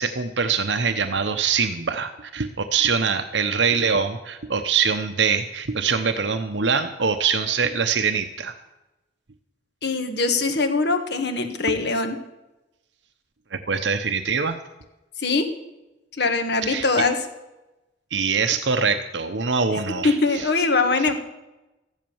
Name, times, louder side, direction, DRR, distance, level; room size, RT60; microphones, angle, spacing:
voice 1, 0.0-8.6 13.5-14.6 16.6-16.9 18.1-20.5, right 5 dB, 90° right, 7 dB, 0.9 m, -23 dB
voice 2, 9.8-12.2 15.2-15.5 16.2-17.2 19.7-19.8 20.2-21.1, left 3 dB, 65° left, 7 dB, 1.7 m, -22 dB
14.5 x 11.0 x 7.2 m, 1.0 s
head